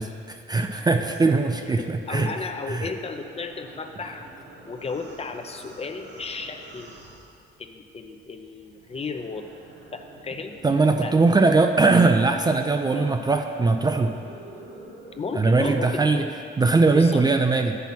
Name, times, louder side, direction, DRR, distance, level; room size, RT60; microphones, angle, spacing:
voice 1, 0.0-2.3 2.7-2.9 10.6-14.1 15.4-16.2 16.6-17.8, right 3 dB, 20° right, 5 dB, 0.4 m, -20 dB
sound 1, 0.6-7.9 8.2-16.2, right 2 dB, 60° right, 1.4 m, -47 dB
voice 2, 1.3-4.3 4.6-6.9 7.6-9.5 9.9-10.6 11.0-11.1 12.9-13.1 15.1-16.3 16.9-17.2, left 4 dB, 30° left, 6 dB, 0.6 m, -34 dB
7.2 x 5.6 x 5.9 m, 2.4 s
cardioid pair, 90°, 20 cm